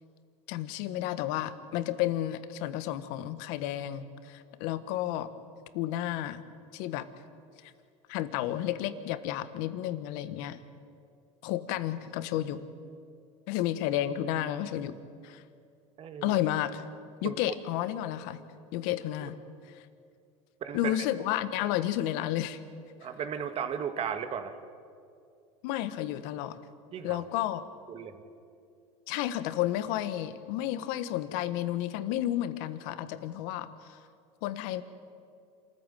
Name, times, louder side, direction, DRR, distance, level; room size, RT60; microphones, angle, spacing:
voice 1, 0.5-5.3 5.7-6.4 6.7-7.1 7.6-7.7 8.1-10.6 11.4-12.6 13.5-15.0 15.2-15.4 16.2-16.8 17.2-19.4 19.7-19.8 20.7-22.6 25.6-26.6 27.0-27.6 29.1-34.0 34.4-34.8, left 13 dB, 65° left, 12 dB, 1.4 m, -32 dB
voice 2, 16.0-16.4 17.2-17.3 19.2-19.3 20.6-21.0 23.0-24.5 26.9-27.2 27.9-28.2, right 8 dB, 35° right, 9 dB, 2.0 m, -35 dB
27.5 x 14.0 x 9.3 m, 2.4 s
supercardioid pair, 120°, 17 cm